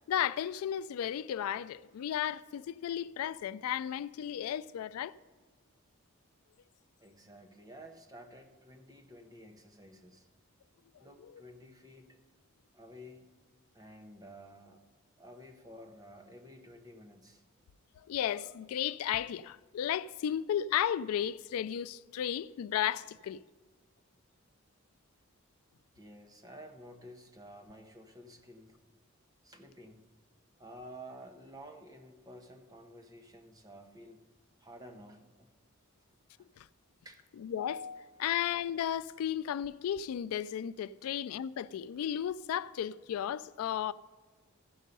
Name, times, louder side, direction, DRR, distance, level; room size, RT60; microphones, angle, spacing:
voice 1, 0.0-5.1 11.2-11.4 18.1-23.4 36.6-36.7 37.4-43.9, left 10 dB, 85° left, 0.3 m, -34 dB
voice 2, 7.0-10.3 11.0-12.2 12.7-13.3 13.7-14.8 15.2-17.4 25.9-28.8 29.4-30.0 30.6-34.2 34.6-35.5 36.4-36.5 37.0-37.2, equal, 15° right, 0.8 m, -52 dB
14.5 x 5.4 x 5.3 m
head